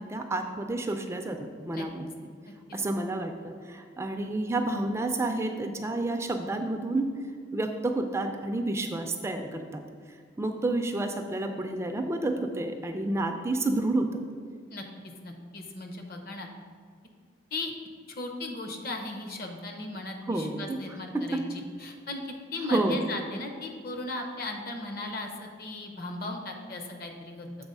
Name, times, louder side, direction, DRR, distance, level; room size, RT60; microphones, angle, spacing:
voice 1, 0.0-2.1 2.7-7.1 7.5-9.8 10.4-14.1 20.3-20.8 21.1-21.4 22.7-23.0, right 2 dB, 15° right, 5 dB, 0.3 m, -30 dB
voice 2, 15.2-16.5 17.5-17.7 18.1-22.2 22.5-27.5, left 2 dB, 55° left, 3 dB, 0.8 m, -37 dB
7.0 x 4.0 x 5.3 m, 2.1 s
head